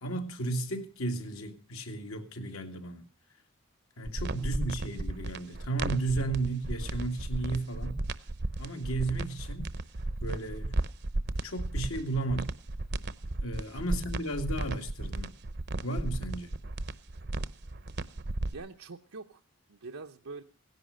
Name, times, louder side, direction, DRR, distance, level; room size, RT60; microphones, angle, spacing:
voice 1, 0.0-3.0 4.0-8.0 8.6-9.7 10.2-10.8 11.4-12.5 13.4-15.3 15.8-16.5, right 2 dB, 75° left, 2.1 m, -34 dB
sound 1, 4.0-18.5, right 2 dB, 50° right, 0.7 m, -34 dB
voice 2, 18.5-19.4 19.7-20.4, right 3 dB, 80° right, 0.8 m, -45 dB
17.0 x 10.5 x 6.4 m
head